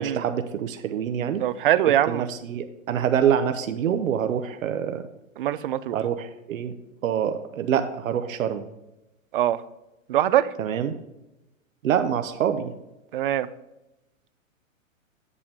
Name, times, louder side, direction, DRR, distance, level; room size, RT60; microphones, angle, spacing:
voice 1, 0.0-1.4 2.1-5.0 5.9-6.7 7.0-8.7 10.6-10.9 11.8-12.7, right 8 dB, 70° right, 8 dB, 0.9 m, -26 dB
voice 2, 1.4-2.3 5.4-6.0 9.3-9.6 10.1-10.5 13.1-13.5, right 12 dB, 40° right, 16 dB, 0.4 m, -22 dB
8.7 x 7.0 x 3.5 m, 0.95 s
hypercardioid pair, 140°, 41 cm